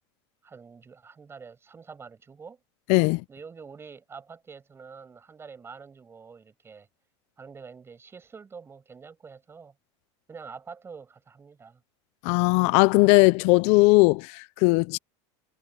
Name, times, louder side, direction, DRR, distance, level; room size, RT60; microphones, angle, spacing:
voice 1, 0.4-2.6 3.3-6.9 7.4-9.7 10.3-11.8, right 5 dB, 15° right, 7.8 m, -46 dB
voice 2, 2.9-3.2 12.2-15.0, left 25 dB, 55° left, 0.6 m, -19 dB
supercardioid pair, 145°, 14 cm